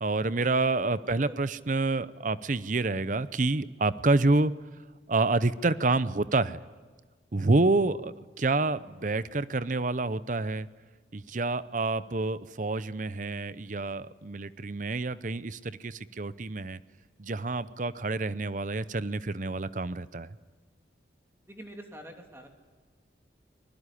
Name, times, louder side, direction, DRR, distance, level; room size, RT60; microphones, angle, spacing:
voice 1, 0.0-4.5 5.1-6.6 7.3-10.7 11.1-16.8 17.2-20.3, right 3 dB, 45° right, 15 dB, 0.7 m, -28 dB
voice 2, 21.5-22.5, equal, 15° right, 2 dB, 2.9 m, -45 dB
25.0 x 20.5 x 10.0 m, 1.4 s
head